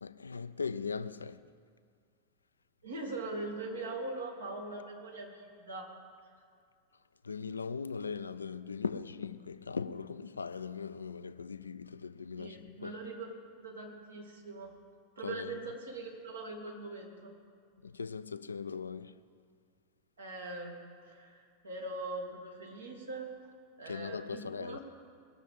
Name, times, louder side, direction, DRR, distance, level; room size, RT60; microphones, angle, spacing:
voice 1, 0.0-1.4 7.2-12.9 15.2-15.5 17.8-19.1 23.9-24.8, left 5 dB, 75° left, 0.4 m, -39 dB
voice 2, 2.8-5.9 12.4-14.7 15.2-17.3 20.2-23.3 23.8-24.8, right 2 dB, 70° right, 2.4 m, -42 dB
20.0 x 6.8 x 7.6 m
figure-of-eight pair, 90°, 0 cm